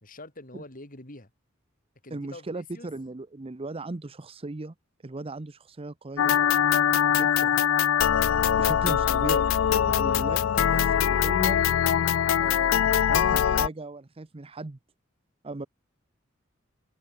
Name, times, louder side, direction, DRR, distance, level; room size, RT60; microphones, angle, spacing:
voice 1, 0.0-1.3 2.0-2.9, left 2 dB, 45° left, 3.8 m, -45 dB
voice 2, 2.1-4.7 5.0-6.5 7.1-7.6 8.6-9.5 9.9-11.6 12.3-14.8 15.4-15.7, right 2 dB, 30° right, 0.7 m, -37 dB
sound 1, 6.2-13.7, left 9 dB, 75° left, 0.4 m, -22 dB
open air
head